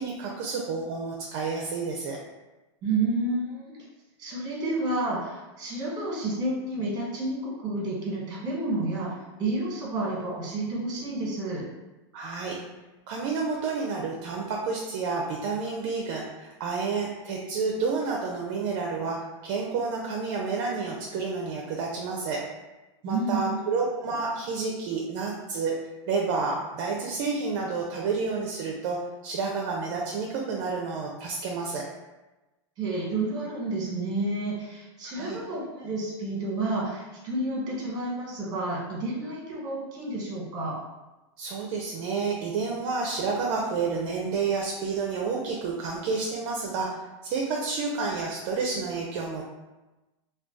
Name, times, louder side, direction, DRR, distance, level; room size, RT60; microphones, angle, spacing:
voice 1, 0.0-2.2 12.1-12.6 13.1-22.4 23.0-25.8 26.1-31.8 35.0-35.4 41.4-49.4, right 4 dB, 50° right, -1 dB, 0.5 m, -30 dB
voice 2, 2.8-3.8 4.2-11.6 23.0-23.7 32.8-40.7, right 2 dB, 25° right, -4 dB, 1.2 m, -30 dB
2.3 x 2.3 x 3.8 m, 1.1 s
supercardioid pair, 145°, 16 cm